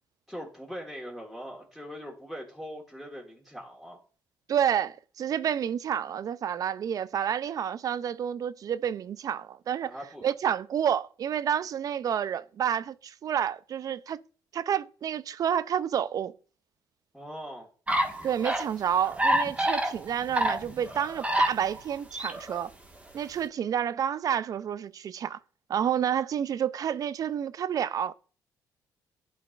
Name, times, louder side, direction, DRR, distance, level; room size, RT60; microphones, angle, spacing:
voice 1, 0.3-4.0 9.8-10.3 17.1-17.7, equal, ahead, 1.5 m, -41 dB
voice 2, 4.5-9.9 10.2-14.2 14.5-16.3 18.2-22.7 23.1-25.4 25.7-28.1, right 9 dB, 55° right, 0.4 m, -29 dB
sound 1, 17.9-18.6 19.1-21.8 22.1-22.6, right 1 dB, 15° right, 1.5 m, -27 dB
11.5 x 3.9 x 2.4 m
cardioid pair, 85°, 7 cm